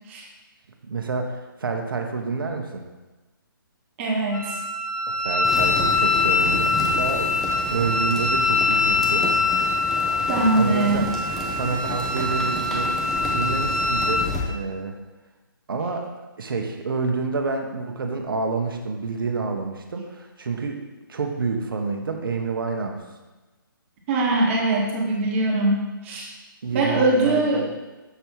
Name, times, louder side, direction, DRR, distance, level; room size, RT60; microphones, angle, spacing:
voice 1, 0.8-2.8 5.1-9.3 10.5-11.1 11.5-15.0 15.7-16.1 16.4-20.8 21.1-23.0 26.6-27.7, right 4 dB, 70° right, 4 dB, 1.0 m, -28 dB
voice 2, 4.0-4.6 10.3-11.1 24.1-26.3 26.7-27.7, right 2 dB, 35° right, -2 dB, 1.3 m, -22 dB
Wind instrument woodwind instrument, 4.3-14.3, left 3 dB, 40° left, 2.1 m, -23 dB
sound 1, 5.4-14.4, equal, ahead, 0.6 m, -32 dB
6.8 x 3.4 x 4.5 m, 1.2 s
hypercardioid pair, 150°, 12 cm